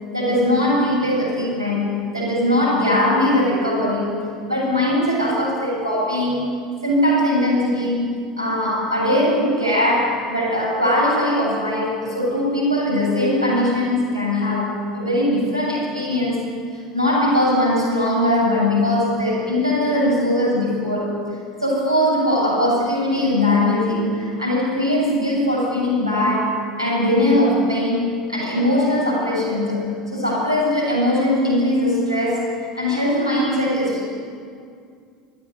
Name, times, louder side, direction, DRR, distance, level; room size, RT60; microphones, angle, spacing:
voice 1, 0.1-6.5 6.8-16.4 16.9-21.2 21.6-29.8 30.1-34.1, left 1 dB, 85° right, -4 dB, 7.9 m, -20 dB
20.5 x 14.5 x 9.7 m, 2.2 s
figure-of-eight pair, 70°, 3 cm